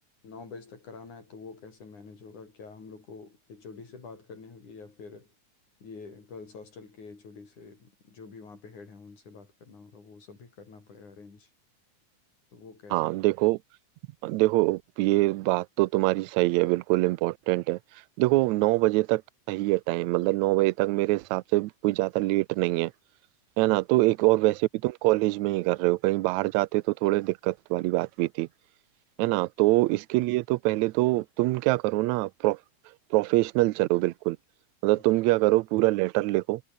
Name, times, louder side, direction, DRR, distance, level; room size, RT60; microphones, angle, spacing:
voice 1, 0.2-5.3 5.8-11.5 12.5-13.1 18.3-18.4 23.7-23.8 29.3-29.4, left 4 dB, 80° left, 7.0 m, -47 dB
voice 2, 12.9-13.6 14.2-17.8 18.2-19.2 19.5-22.9 23.6-28.5 29.2-32.6 33.1-34.4 34.8-36.6, right 20 dB, 80° right, 1.9 m, -24 dB
omnidirectional pair, 3.4 m